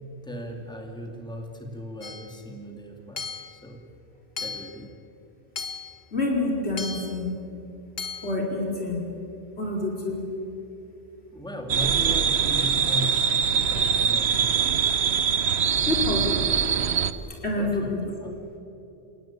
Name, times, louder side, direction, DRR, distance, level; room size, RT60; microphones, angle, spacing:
voice 1, 0.2-3.8 4.4-5.0 11.3-14.7 17.6-18.4, equal, 5° left, 2 dB, 2.6 m, -37 dB
Hammer / Chink clink, 2.0-2.4 3.2-3.6 4.4-4.8 5.6-6.0 6.8-7.2 8.0-8.4, left 5 dB, 65° left, 1.5 m, -35 dB
voice 2, 6.1-7.3 8.2-9.1 9.6-10.2 15.7-16.4 17.4-18.0, left 2 dB, 85° left, -1 dB, 5.0 m, -27 dB
sound 1, 11.7-17.1, right 7 dB, 80° right, 1.1 m, -23 dB
28.5 x 17.5 x 8.9 m, 2.9 s
omnidirectional pair, 1.1 m